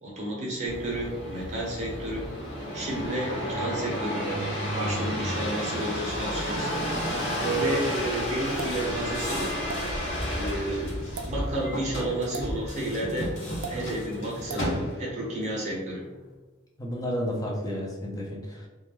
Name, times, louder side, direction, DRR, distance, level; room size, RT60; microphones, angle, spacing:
voice 1, 0.0-2.3 2.7-6.7 7.4-9.5 10.3-13.4 13.7-16.0, right 1 dB, 35° right, -4 dB, 0.7 m, -31 dB
sound 1, 0.7-15.2 15.8-16.3, equal, 55° left, 0.8 m, -32 dB
sound 2, 8.6-8.8 9.7-9.8 11.0-11.3 12.3-12.5 13.6-13.8 14.5-14.7, right 5 dB, 70° right, 0.3 m, -36 dB
voice 2, 16.8-18.7, equal, 15° left, -2 dB, 0.4 m, -31 dB
2.2 x 2.1 x 3.0 m, 1.2 s
head